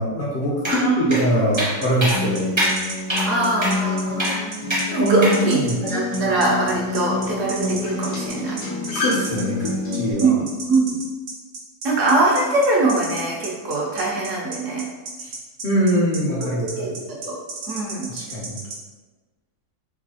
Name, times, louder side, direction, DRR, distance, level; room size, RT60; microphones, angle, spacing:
voice 1, 0.0-2.5 5.0-5.8 8.9-10.3 15.2-15.3 15.6-17.0 18.1-18.5, equal, 65° left, -6 dB, 0.5 m, -22 dB
sound 1, 0.6-0.8 1.1-1.2 1.6-1.7 2.0-2.2 2.6-2.7 3.1-3.3 3.6-3.8 4.2-4.4 4.7-4.8 5.2-5.4, right 1 dB, 30° right, 0.5 m, -23 dB
voice 2, 0.7-1.2 3.3-4.3 4.9-8.6 10.2-11.0 11.8-14.9 16.4-17.4 17.7-18.1, right 2 dB, 65° right, -3 dB, 0.8 m, -22 dB
sound 2, 1.5-18.8, right 3 dB, 80° right, 1.3 m, -34 dB
Acoustic guitar, 2.1-10.1, left 3 dB, 85° left, 1.4 m, -28 dB
3.9 x 2.6 x 2.8 m, 1.3 s
omnidirectional pair, 1.7 m